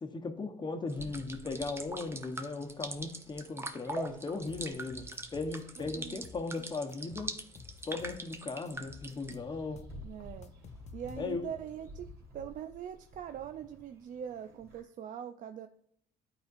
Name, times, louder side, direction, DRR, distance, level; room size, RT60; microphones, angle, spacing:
voice 1, 0.0-7.4 7.9-9.8 11.2-11.4, left 3 dB, 25° left, 5 dB, 1.0 m, -37 dB
sound 1, 0.9-9.3, right 2 dB, 15° right, 0.7 m, -42 dB
sound 2, 1.0-14.8, left 1 dB, 70° right, 2.7 m, -54 dB
sound 3, 4.5-6.6 6.9-8.4 8.7-11.6, left 6 dB, 40° left, 0.6 m, -52 dB
voice 2, 5.8-6.2 10.0-10.5 10.9-12.1 12.3-15.7, right 9 dB, 50° right, 8 dB, 0.4 m, -42 dB
12.0 x 4.3 x 2.5 m, 0.71 s
cardioid pair, 110°, 17 cm